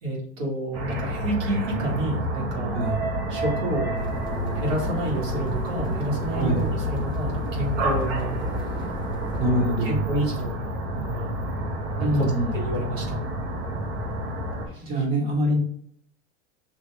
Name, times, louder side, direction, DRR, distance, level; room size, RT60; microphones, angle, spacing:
voice 1, 0.0-2.8 3.3-3.9 4.5-8.4 9.4-10.5 11.0-11.4 12.0-12.1 12.5-13.2 14.7-14.9, right 1 dB, 85° right, -3 dB, 1.9 m, -29 dB
sound 1, 0.7-14.7, right 1 dB, 60° right, 1.3 m, -29 dB
voice 2, 2.7-3.0 6.3-6.7 9.4-10.0 12.0-12.5 14.8-15.6, right 1 dB, 25° right, -3 dB, 1.8 m, -24 dB
sound 2, 3.9-9.5, left 4 dB, 10° left, 0.8 m, -33 dB
5.1 x 2.8 x 3.3 m, 0.64 s
supercardioid pair, 125°, 37 cm